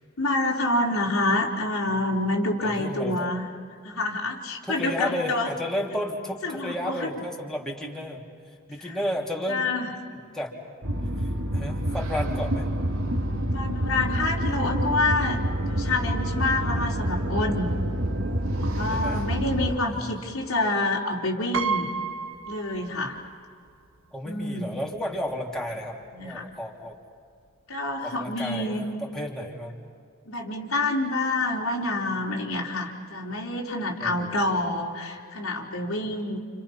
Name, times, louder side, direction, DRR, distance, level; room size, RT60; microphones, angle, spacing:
voice 1, 0.2-3.5 3.8-5.5 6.4-7.1 8.8-9.0 9.5-9.9 13.5-17.7 18.6-21.9 22.5-23.2 24.2-24.7 26.1-26.5 27.7-28.8 30.3-36.4, left 2 dB, 90° left, -2 dB, 3.9 m, -27 dB
voice 2, 2.6-3.3 4.7-8.3 8.7-9.7 10.1-10.5 11.2-12.7 18.9-19.3 19.9-20.3 24.1-27.0 28.0-29.7 34.0-34.5, equal, 5° left, -3 dB, 3.3 m, -33 dB
sound 1, 10.8-19.7, right 1 dB, 90° right, 2.1 m, -27 dB
Piano, 21.5-23.4 23.7-23.8 24.9-25.0 25.3-25.6, right 5 dB, 70° right, 1.0 m, -31 dB
29.5 x 29.5 x 5.8 m, 2.3 s
head